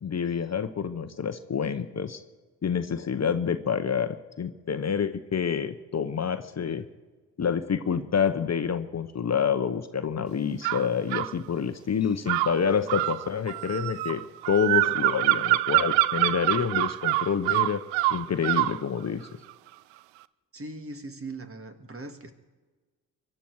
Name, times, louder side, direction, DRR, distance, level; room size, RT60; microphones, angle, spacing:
voice 1, 0.0-2.2 2.6-6.9 7.4-14.2 14.5-17.8 18.1-19.3, left 7 dB, 35° left, 10 dB, 1.0 m, -28 dB
sound 1, 10.6-11.3 12.3-18.8, right 18 dB, 80° right, 0.5 m, -25 dB
voice 2, 20.5-22.3, right 2 dB, 30° right, 7 dB, 1.9 m, -40 dB
23.5 x 11.0 x 4.8 m, 1.3 s
hypercardioid pair, 40°, 44 cm